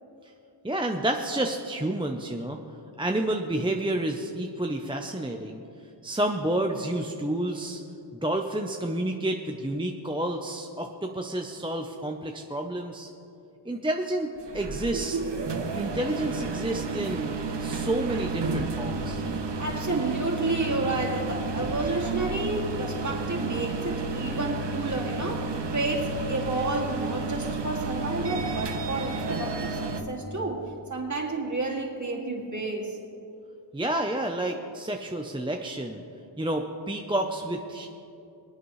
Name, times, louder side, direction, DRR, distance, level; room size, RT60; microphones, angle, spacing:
voice 1, 0.6-2.6 3.0-5.6 6.0-7.8 8.2-13.1 13.6-15.2 15.7-19.2 33.7-36.0 36.4-37.9, right 1 dB, 10° right, 3 dB, 0.7 m, -30 dB
sound 1, 14.4-30.0, right 3 dB, 60° right, 1.1 m, -31 dB
voice 2, 19.6-30.6 30.9-33.0, right 2 dB, 40° right, -2 dB, 2.6 m, -30 dB
25.5 x 8.9 x 3.2 m, 2.8 s
wide cardioid pair, 65°, 47 cm